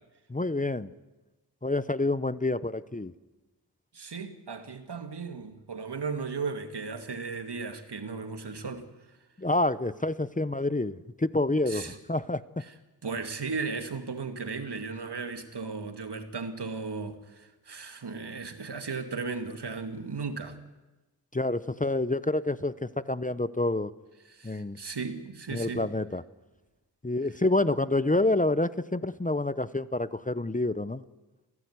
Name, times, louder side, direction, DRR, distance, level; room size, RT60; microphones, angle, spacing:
voice 1, 0.3-0.9 1.6-3.1 9.4-12.6 21.3-23.9 24.4-24.8 25.5-26.2 27.0-31.0, left 2 dB, 20° left, 0.8 m, -28 dB
voice 2, 3.9-8.9 11.7-12.0 13.0-20.6 24.3-25.9, right 4 dB, 75° right, 2.3 m, -36 dB
28.5 x 16.0 x 9.6 m
wide cardioid pair, 60°, 41 cm